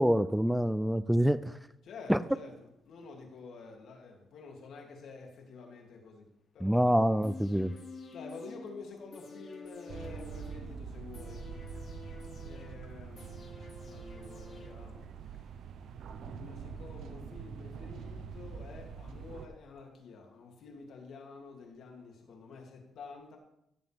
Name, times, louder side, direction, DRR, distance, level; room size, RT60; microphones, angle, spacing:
voice 1, 0.0-1.6 2.1-2.2 6.6-7.7, equal, 5° right, 0.4 m, -26 dB
voice 2, 1.8-6.9 8.1-11.5 12.4-13.3 13.8-15.6 16.2-23.4, left 4 dB, 70° left, 2.9 m, -49 dB
sound 1, 7.2-15.2 15.5-15.6, left 3 dB, 50° left, 2.7 m, -50 dB
sound 2, 9.9-19.5, right 6 dB, 70° right, 0.8 m, -44 dB
17.0 x 8.0 x 3.6 m
cardioid pair, 90°, 0 cm